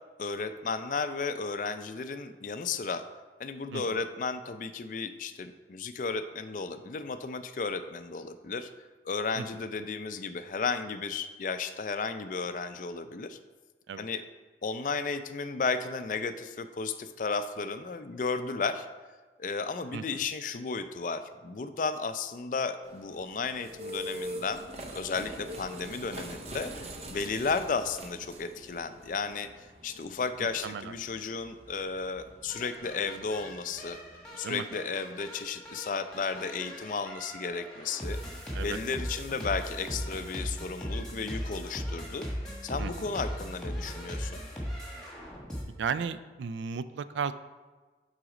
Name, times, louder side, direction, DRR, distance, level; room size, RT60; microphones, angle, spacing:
voice 1, 0.2-3.0 3.4-8.7 9.1-13.4 14.0-14.2 14.6-18.9 19.4-24.6 24.9-29.5 29.8-34.0 34.4-42.3 42.6-44.4, left 4 dB, 45° left, 10 dB, 0.4 m, -34 dB
voice 2, 19.9-20.2 30.6-30.9 34.4-34.6 38.5-38.8 42.8-43.1 45.8-47.3, right 6 dB, 90° right, 14 dB, 0.3 m, -35 dB
sound 1, 22.8-34.3, right 1 dB, 35° right, 0.6 m, -44 dB
sound 2, 32.5-45.6, equal, 5° left, 1.4 m, -39 dB
7.9 x 4.1 x 4.9 m, 1.3 s
head